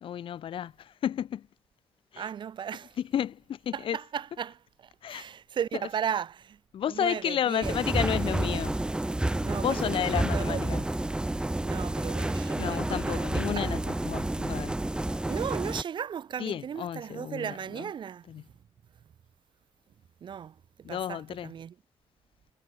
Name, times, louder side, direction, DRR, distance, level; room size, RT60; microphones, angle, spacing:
voice 1, 0.0-1.5 2.1-2.3 3.1-4.0 5.0-5.3 6.7-8.8 9.6-10.8 12.5-14.8 16.4-17.9 18.3-18.4 20.8-21.5, left 10 dB, 65° left, 1.3 m, -32 dB
voice 2, 2.2-3.0 3.7-6.6 6.9-7.8 9.3-10.9 11.6-13.7 15.2-18.4 20.2-21.8, right 8 dB, 55° right, 2.0 m, -36 dB
sound 1, 7.6-15.8, right 1 dB, 10° right, 1.7 m, -30 dB
wide cardioid pair, 145°, 10 cm